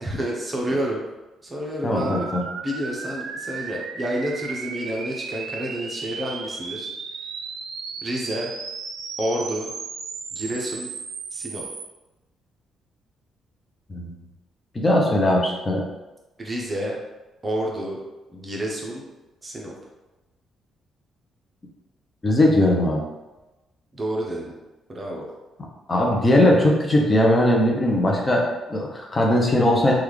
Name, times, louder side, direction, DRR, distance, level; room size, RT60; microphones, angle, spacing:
voice 1, 0.0-1.0 1.4-2.3 2.6-6.9 8.0-8.5 9.2-9.7 10.3-10.9 11.3-11.7 16.4-17.0 17.4-18.0 18.3-19.1 19.4-19.7 23.9-24.5 24.9-25.3, right 1 dB, 25° right, -1 dB, 0.7 m, -29 dB
voice 2, 1.8-2.4 13.9-14.1 14.7-15.9 22.2-23.0 25.9-29.9, left 1 dB, 25° left, -1 dB, 0.6 m, -19 dB
sound 1, 1.9-11.8, right 5 dB, 80° right, 0.4 m, -35 dB
3.4 x 2.3 x 3.2 m, 1.1 s
cardioid pair, 90°, 0 cm